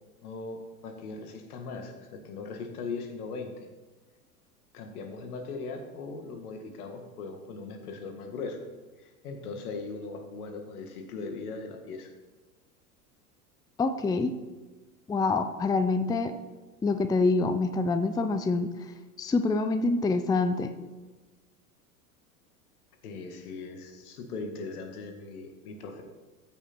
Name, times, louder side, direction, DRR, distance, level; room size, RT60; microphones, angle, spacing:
voice 1, 0.2-3.7 4.7-8.6 9.0-12.1 23.0-26.0, left 4 dB, 75° left, 5 dB, 1.8 m, -39 dB
voice 2, 13.8-14.3 15.1-16.3 16.8-18.7 19.2-20.7, left 3 dB, 10° left, 9 dB, 0.5 m, -26 dB
14.0 x 5.8 x 4.5 m, 1.2 s
hypercardioid pair, 90°, 46 cm